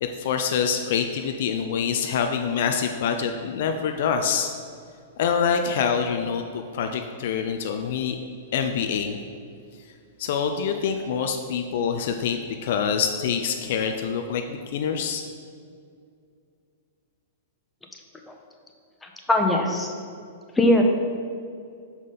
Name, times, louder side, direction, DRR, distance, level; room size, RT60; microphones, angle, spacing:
voice 1, 0.0-4.5 5.2-8.2 8.5-9.2 10.2-15.2, left 7 dB, 55° left, 5 dB, 0.4 m, -25 dB
voice 2, 19.3-19.9 20.6-20.8, left 1 dB, 10° left, 2 dB, 0.8 m, -20 dB
6.0 x 5.5 x 4.1 m, 2.3 s
figure-of-eight pair, 105°, 0 cm